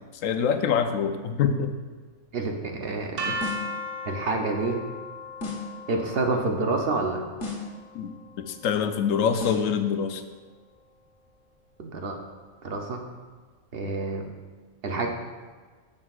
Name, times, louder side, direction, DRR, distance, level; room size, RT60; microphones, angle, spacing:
voice 1, 0.2-1.7 3.3-3.4 7.9-10.2, left 7 dB, 85° left, 8 dB, 1.0 m, -25 dB
voice 2, 2.3-3.3 4.1-4.8 5.9-7.2 11.8-12.2 12.6-13.0 13.7-14.3 14.8-15.1, right 3 dB, 55° right, 3 dB, 0.8 m, -28 dB
sound 1, 3.2-9.1, equal, 90° right, 1.3 m, -37 dB
sound 2, 3.4-3.8 5.4-5.8 7.4-7.8 9.4-9.8, left 3 dB, 60° left, 1.5 m, -34 dB
9.5 x 6.4 x 2.4 m, 1.5 s
omnidirectional pair, 1.3 m